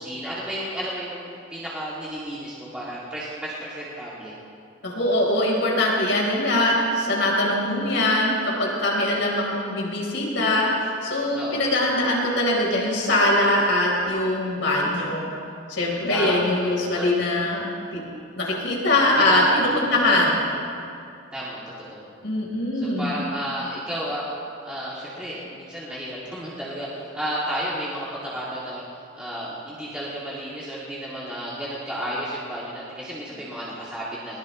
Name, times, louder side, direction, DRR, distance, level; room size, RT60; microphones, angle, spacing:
voice 1, 0.0-4.3 11.3-11.7 16.1-17.3 19.2-19.6 19.9-20.2 21.3-22.0 22.7-24.2 24.6-28.8 29.2-34.4, equal, 5° right, -9 dB, 2.5 m, -32 dB
voice 2, 4.8-15.3 15.7-18.0 18.4-20.4 22.2-23.1, left 1 dB, 60° left, -3 dB, 4.2 m, -22 dB
21.5 x 20.0 x 3.2 m, 2.5 s
head